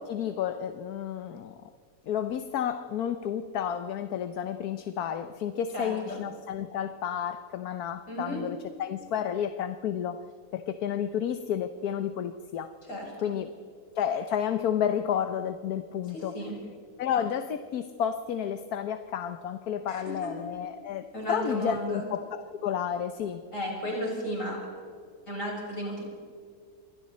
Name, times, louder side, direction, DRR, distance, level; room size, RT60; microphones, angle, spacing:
voice 1, 0.0-1.6 2.1-10.3 10.5-12.7 13.2-13.5 13.9-16.4 17.0-23.4, left 9 dB, 75° left, 10 dB, 1.3 m, -31 dB
voice 2, 5.7-6.2 8.1-8.5 12.8-13.3 16.1-16.6 19.9-20.3 21.1-22.1 23.5-24.7 25.3-26.0, equal, 55° left, -2 dB, 7.1 m, -34 dB
27.5 x 23.5 x 4.2 m, 2.2 s
omnidirectional pair, 1.6 m